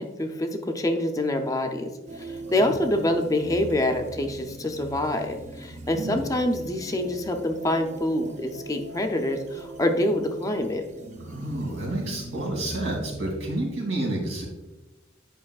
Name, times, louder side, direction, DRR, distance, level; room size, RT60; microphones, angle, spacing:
voice 1, 0.0-10.9, left 1 dB, 15° left, 5 dB, 0.4 m, -26 dB
sound 1, 2.1-13.6, right 2 dB, 35° right, 0.6 m, -40 dB
voice 2, 11.2-14.5, right 1 dB, 85° right, -1 dB, 2.1 m, -30 dB
8.5 x 5.3 x 2.3 m, 1.1 s
head